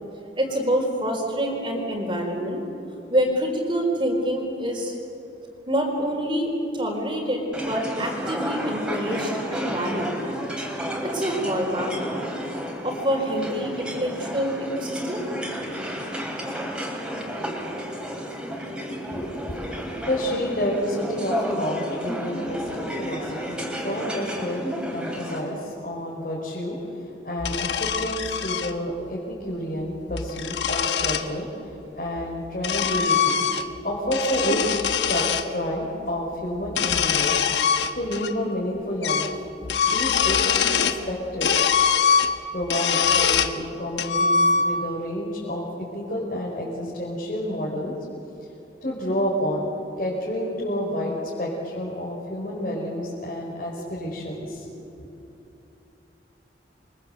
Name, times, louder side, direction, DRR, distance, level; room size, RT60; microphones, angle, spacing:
voice 1, 0.4-2.6 3.1-4.9 5.7-10.1 11.0-12.0 12.8-15.2, equal, 30° right, 1 dB, 4.4 m, -26 dB
sound 1, 7.5-25.4, equal, 5° right, 4.0 m, -32 dB
voice 2, 19.1-24.6 24.9-33.4 33.8-34.8 35.1-37.5 37.9-39.3 39.8-41.5 42.5-47.9 48.8-49.7 50.0-55.1, equal, 50° left, -5 dB, 5.1 m, -29 dB
sound 2, 27.4-28.7 29.9-31.3 32.2-33.8 34.1-35.5 36.6-38.3 38.6-38.7 39.0-39.4 39.6-41.0 41.4-43.6 44.0-44.9, left 6 dB, 75° left, 1.2 m, -23 dB
28.5 x 24.0 x 8.0 m, 2.9 s
head